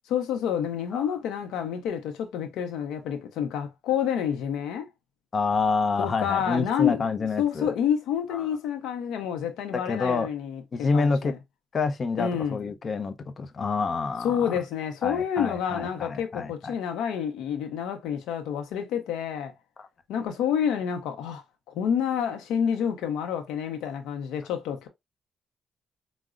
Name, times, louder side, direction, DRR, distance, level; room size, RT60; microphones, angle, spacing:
voice 1, 0.1-4.9 6.0-7.0 7.4-11.4 12.2-12.6 14.2-19.5 20.1-24.9, left 8 dB, 90° left, 0.6 m, -28 dB
voice 2, 5.3-7.7 8.3-8.4 9.9-10.3 10.7-11.3 11.7-14.5 15.0-16.7 19.8-19.9, left 4 dB, 40° left, 0.5 m, -28 dB
4.8 x 2.0 x 2.4 m
cardioid pair, 90°, 0 cm